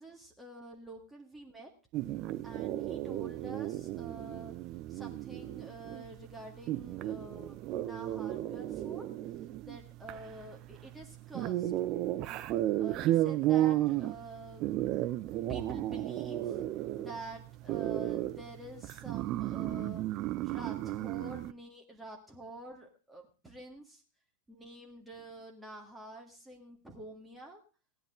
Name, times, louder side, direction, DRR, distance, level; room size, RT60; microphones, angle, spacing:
voice 1, 0.0-1.7 2.4-4.5 4.9-9.1 9.6-11.7 12.8-14.8 15.5-16.6 17.0-20.1 20.4-24.0 24.5-27.6, right 1 dB, 10° right, 1 dB, 1.8 m, -48 dB
sound 1, 1.9-21.5, right 14 dB, 40° right, 0.6 m, -34 dB
17.0 x 10.0 x 3.7 m, 0.35 s
figure-of-eight pair, 90°, 0 cm